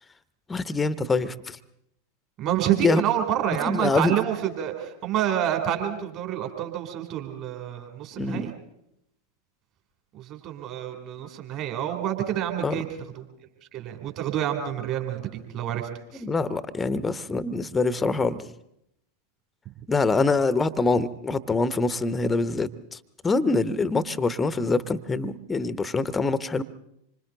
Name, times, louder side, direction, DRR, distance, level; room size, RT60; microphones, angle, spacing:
voice 1, 0.5-1.6 2.7-3.0 3.6-4.1 8.2-8.5 12.6-12.8 16.2-18.5 19.9-26.6, left 3 dB, 15° left, 15 dB, 0.9 m, -25 dB
voice 2, 2.4-8.5 10.1-12.8 13.7-16.2, right 11 dB, 40° right, 5 dB, 3.2 m, -28 dB
26.5 x 25.5 x 3.9 m, 0.78 s
figure-of-eight pair, 90°, 0 cm